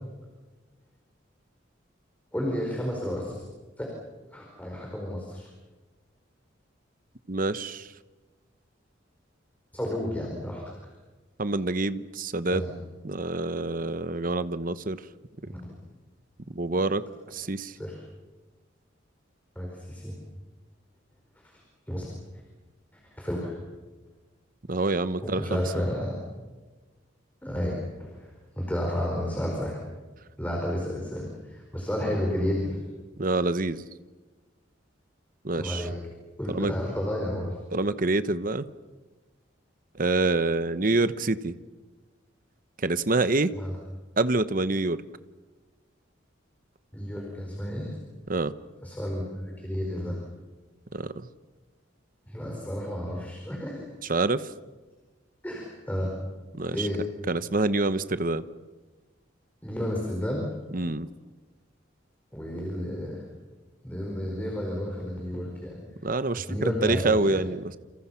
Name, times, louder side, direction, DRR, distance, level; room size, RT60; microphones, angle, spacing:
voice 1, 2.3-3.4 3.8-3.9 4.3-5.5 9.7-10.7 12.5-12.7 15.4-15.7 17.7-18.0 19.5-20.1 21.3-22.1 22.9-23.6 25.2-26.2 27.4-28.3 28.5-29.8 30.4-32.8 35.6-35.9 36.4-37.6 43.5-43.8 46.9-48.0 48.8-50.2 52.3-53.9 55.4-56.1 56.7-57.0 59.6-60.5 62.3-63.2 63.8-65.8 66.4-67.4, left 1 dB, 10° left, -1 dB, 4.9 m, -31 dB
voice 2, 7.3-7.9 11.4-12.6 13.0-15.0 16.5-17.0 17.3-17.7 24.7-25.6 33.2-33.9 35.4-35.9 36.5-36.7 37.7-38.7 40.0-41.5 42.8-43.5 44.2-45.0 48.3-48.5 50.9-51.3 54.1-54.5 56.5-56.9 57.3-58.4 60.7-61.1 66.0-67.8, right 2 dB, 45° right, 13 dB, 1.0 m, -26 dB
29.5 x 28.5 x 5.8 m, 1.3 s
head